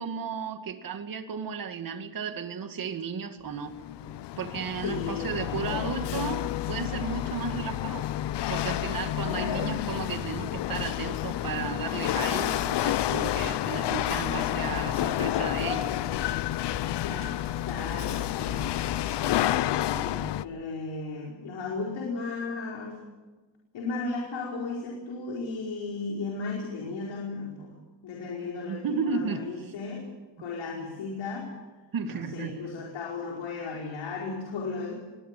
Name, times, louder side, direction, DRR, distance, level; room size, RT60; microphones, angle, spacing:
voice 1, 0.0-3.7 4.4-8.1 8.5-16.0 28.7-29.4 31.9-32.6, right 6 dB, 50° right, 7 dB, 2.3 m, -34 dB
Chatter / Hiss / Rattle, 3.5-20.4, left 13 dB, 65° left, 0.8 m, -30 dB
voice 2, 4.8-6.0 9.3-9.7 17.0-17.4 17.6-18.9 19.8-23.0 23.7-27.8 28.0-30.1 30.4-31.5 32.1-34.9, left 3 dB, 80° left, -1 dB, 4.8 m, -35 dB
sound 1, 12.1-19.6, left 3 dB, 30° left, 2.3 m, -44 dB
22.5 x 19.0 x 7.5 m, 1.3 s
cardioid pair, 135°, 45 cm